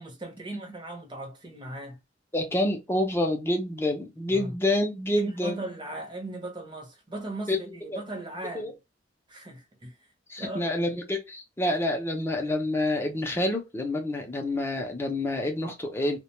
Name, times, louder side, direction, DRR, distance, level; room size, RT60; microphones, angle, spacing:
voice 1, 0.0-2.0 4.3-4.5 5.2-8.8 9.3-10.0 10.4-11.0, right 2 dB, 25° right, 0.8 m, -38 dB
voice 2, 2.3-5.6 7.5-7.6 7.9-8.0 8.5-8.7 10.3-16.2, left 1 dB, 15° left, 0.6 m, -28 dB
2.3 x 2.2 x 2.9 m
head